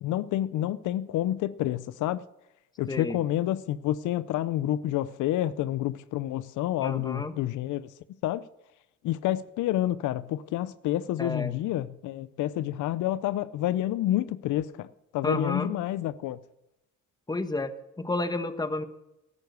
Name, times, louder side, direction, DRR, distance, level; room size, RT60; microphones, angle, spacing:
voice 1, 0.0-2.2 2.8-7.9 8.2-8.4 9.0-14.9 15.1-16.4, left 13 dB, 80° left, 0.6 m, -29 dB
voice 2, 2.9-3.2 6.8-7.3 11.2-11.5 15.2-15.8 17.3-18.9, left 2 dB, 15° left, 1.1 m, -31 dB
12.0 x 9.7 x 6.6 m
cardioid pair, 90°, 30 cm